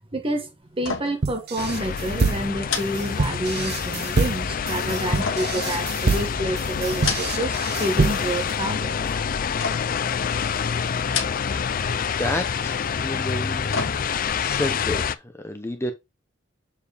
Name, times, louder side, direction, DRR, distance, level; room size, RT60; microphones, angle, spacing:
voice 1, 0.1-9.0, right 1 dB, 30° right, 1.3 m, -28 dB
sound 1, 0.8-1.3 1.6-1.8 2.6-3.7 5.2-6.3 6.8-7.6 7.9-8.5 9.6-10.1 11.0-11.7 12.0-12.1 13.2-14.4 14.8-14.9, left 6 dB, 80° left, 1.3 m, -32 dB
sound 2, 1.2-8.5, right 4 dB, 55° right, 0.8 m, -26 dB
sound 3, 1.6-15.1, left 6 dB, 45° left, 0.4 m, -27 dB
voice 2, 11.8-13.7 14.4-15.9, left 1 dB, 15° left, 0.7 m, -30 dB
6.9 x 4.6 x 3.4 m
head